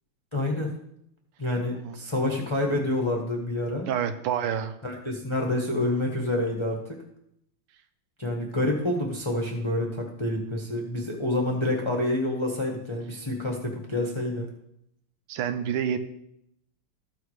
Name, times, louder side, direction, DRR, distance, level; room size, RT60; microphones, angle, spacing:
voice 1, 0.3-0.7 1.4-3.9 4.8-7.0 8.2-14.5, left 1 dB, 20° left, 0 dB, 0.8 m, -28 dB
voice 2, 3.9-4.8 15.3-16.0, right 8 dB, 90° right, 10 dB, 1.7 m, -28 dB
13.5 x 4.7 x 4.8 m, 0.76 s
omnidirectional pair, 2.4 m